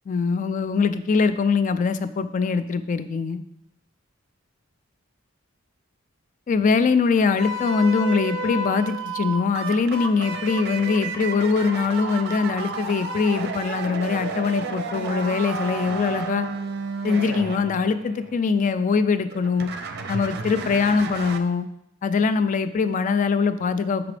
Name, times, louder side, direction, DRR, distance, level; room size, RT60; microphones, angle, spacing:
voice 1, 0.1-3.4 6.5-16.5 17.0-19.7 20.1-21.7 22.0-24.1, left 5 dB, 40° left, 11 dB, 0.3 m, -22 dB
sound 1, 7.4-18.7 19.3-21.4, right 3 dB, 50° right, 0.5 m, -32 dB
5.9 x 4.9 x 3.2 m, 0.80 s
head